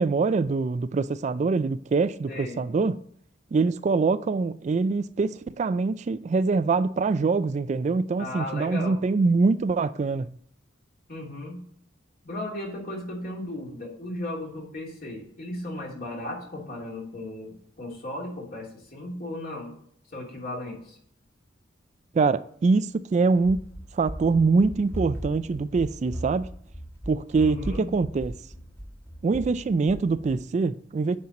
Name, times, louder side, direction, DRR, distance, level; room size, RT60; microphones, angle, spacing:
voice 1, 0.0-3.0 3.5-10.3 22.1-23.6 23.9-26.5 27.1-28.3 29.2-31.2, right 4 dB, 40° right, 0.3 m, -24 dB
voice 2, 2.3-2.7 8.2-9.0 11.1-11.6 12.2-19.7 20.1-21.0 27.3-27.9, left 1 dB, 50° left, 2.8 m, -36 dB
Run, 23.4-30.4, equal, 15° left, 1.4 m, -38 dB
9.5 x 4.4 x 5.2 m
head